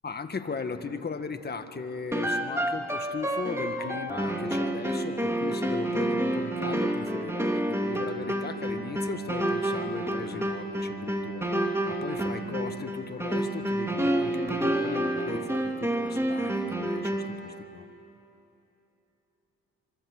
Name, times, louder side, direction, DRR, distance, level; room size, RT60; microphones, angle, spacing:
voice 1, 0.0-11.5 11.8-17.8, left 5 dB, 35° left, 8 dB, 1.7 m, -37 dB
sound 1, 2.1-17.4, right 1 dB, 10° right, 2.7 m, -29 dB
26.5 x 24.5 x 8.5 m, 3.0 s
cardioid pair, 90°, 30 cm